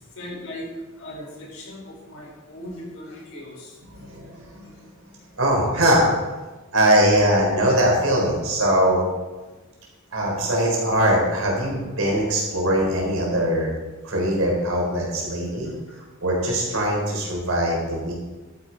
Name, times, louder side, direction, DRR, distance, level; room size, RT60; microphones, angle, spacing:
voice 1, 0.1-0.7 1.0-3.7 15.6-16.0, left 1 dB, 75° left, -3 dB, 4.6 m, -38 dB
voice 2, 3.9-4.7 5.4-6.1 6.7-9.0 10.1-13.7 14.0-15.7 16.2-18.1, right 1 dB, 75° right, -2 dB, 4.4 m, -21 dB
12.5 x 9.7 x 4.7 m, 1.2 s
head